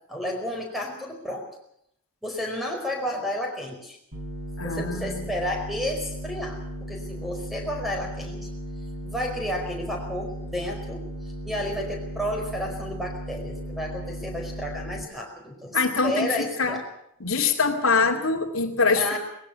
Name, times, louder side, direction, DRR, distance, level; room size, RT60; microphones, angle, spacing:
voice 1, 0.1-1.5 2.2-4.0 4.6-8.5 9.0-16.8 19.0-19.2, left 1 dB, ahead, 2 dB, 4.7 m, -32 dB
sound 1, 4.1-15.0, right 1 dB, 75° right, 5.6 m, -36 dB
voice 2, 4.6-5.3 15.7-16.8 17.2-19.2, left 4 dB, 75° left, 3 dB, 2.5 m, -24 dB
20.0 x 16.0 x 8.7 m, 0.75 s
head